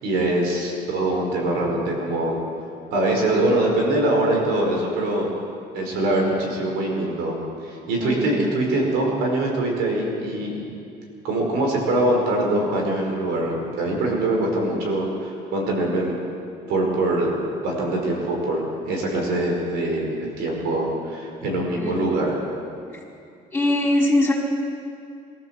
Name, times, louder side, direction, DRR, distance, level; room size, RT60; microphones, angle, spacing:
voice 1, 0.0-2.4 2.9-5.3 5.7-7.4 7.6-10.6 11.2-16.2 16.7-22.4, right 1 dB, 90° right, 0 dB, 5.3 m, -23 dB
voice 2, 23.5-24.3, left 1 dB, 10° left, -2 dB, 5.2 m, -21 dB
23.0 x 14.5 x 7.6 m, 2.5 s
cardioid pair, 110°, 17 cm